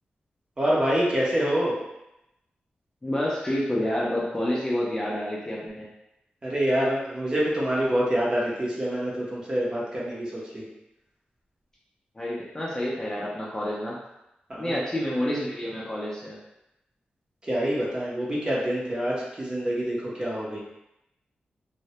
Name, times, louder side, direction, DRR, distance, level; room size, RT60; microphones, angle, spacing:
voice 1, 0.6-1.8 6.4-10.6 14.5-14.8 17.5-20.6, equal, 25° right, -5 dB, 0.6 m, -26 dB
voice 2, 3.0-5.9 12.1-14.0 14.6-16.4, left 1 dB, 20° left, -5 dB, 0.5 m, -28 dB
2.2 x 2.0 x 2.8 m, 0.88 s
wide cardioid pair, 115°, 3 cm